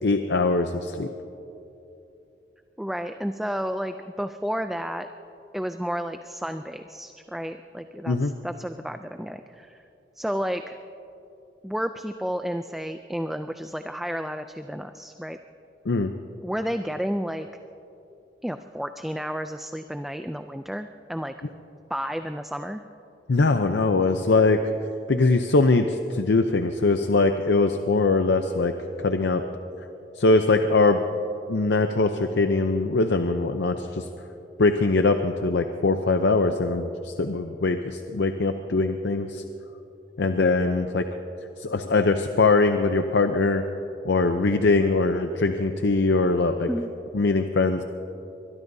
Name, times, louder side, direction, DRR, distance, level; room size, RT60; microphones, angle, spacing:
voice 1, 0.0-1.1 8.1-8.3 15.9-16.1 23.3-24.6 25.1-28.7 29.0-29.4 30.2-31.0 31.5-34.0 34.6-39.4 40.2-41.0 41.6-43.6 44.0-46.7 47.1-47.8, left 3 dB, 85° left, 7 dB, 0.6 m, -22 dB
voice 2, 2.8-5.1 5.5-9.8 10.2-10.8 11.6-15.4 16.4-17.5 18.4-21.3 21.9-22.8 46.7-46.9, equal, ahead, 8 dB, 0.3 m, -31 dB
23.5 x 22.0 x 2.7 m, 2.9 s
head